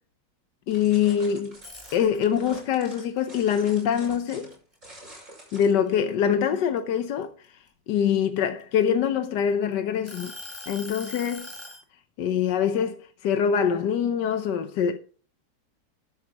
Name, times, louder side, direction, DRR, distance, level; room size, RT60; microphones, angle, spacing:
voice 1, 0.7-1.6 1.9-4.5 5.5-7.6 7.9-10.3 10.7-11.5 12.2-15.0, left 8 dB, 75° left, 1.4 m, -24 dB
sound 1, 0.7-6.0, right 1 dB, 45° right, 6.6 m, -48 dB
sound 2, 1.5-2.5 2.9-4.7 5.2-5.4 5.9-7.7 8.4-9.5 10.1-11.8, left 1 dB, 5° right, 5.1 m, -41 dB
13.0 x 11.5 x 3.0 m
omnidirectional pair, 1.9 m